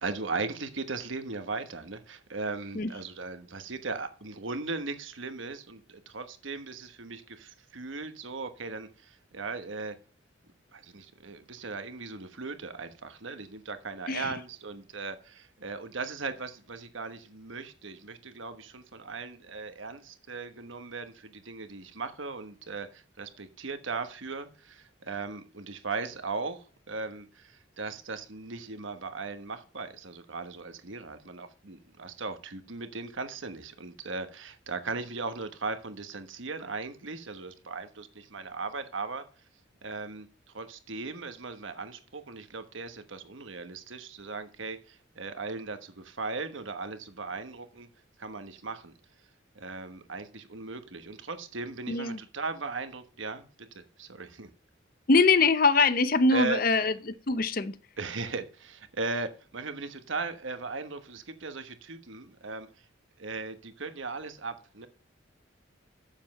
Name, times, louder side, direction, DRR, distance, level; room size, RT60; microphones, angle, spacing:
voice 1, 0.0-9.9 10.7-39.2 39.8-40.3 40.5-47.9 48.2-48.9 49.5-54.5 56.3-56.6 58.0-62.8 63.2-64.9, right 4 dB, 75° right, 1.2 m, -38 dB
voice 2, 51.9-52.2 55.1-57.8, left 3 dB, 45° left, 0.7 m, -23 dB
7.5 x 7.2 x 5.8 m
head